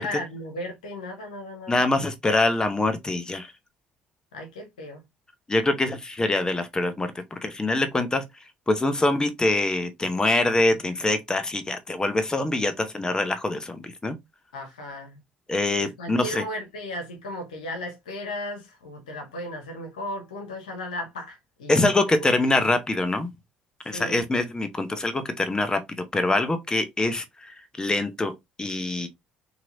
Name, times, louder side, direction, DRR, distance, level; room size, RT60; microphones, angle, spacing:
voice 1, 0.0-1.8 4.3-5.0 14.5-15.2 15.8-21.8 23.9-24.2, left 1 dB, 90° left, 0.9 m, -35 dB
voice 2, 1.7-3.5 5.5-8.2 8.7-14.2 15.5-16.4 21.7-23.3 23.9-28.3 28.6-29.1, left 2 dB, 20° left, 0.7 m, -24 dB
3.0 x 2.8 x 2.5 m
hypercardioid pair, 55°, 4 cm